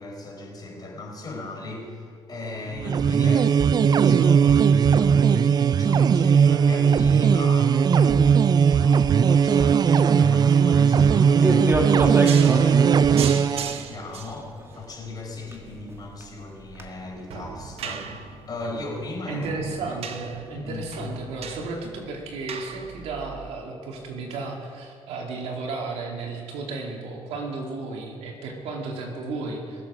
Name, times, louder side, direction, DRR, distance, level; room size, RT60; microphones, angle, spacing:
voice 1, 0.0-19.5 19.9-20.0 20.5-20.9, left 2 dB, 40° left, -1 dB, 4.4 m, -37 dB
sound 1, 2.8-13.8, right 7 dB, 40° right, 0.4 m, -18 dB
sound 2, 8.9-20.4, right 1 dB, 25° right, 1.7 m, -33 dB
sound 3, 12.2-23.5, right 7 dB, 70° right, 0.9 m, -39 dB
voice 2, 19.3-29.9, right 3 dB, 90° right, 0 dB, 2.4 m, -33 dB
20.5 x 7.7 x 6.2 m, 2.1 s
cardioid pair, 95°, 10 cm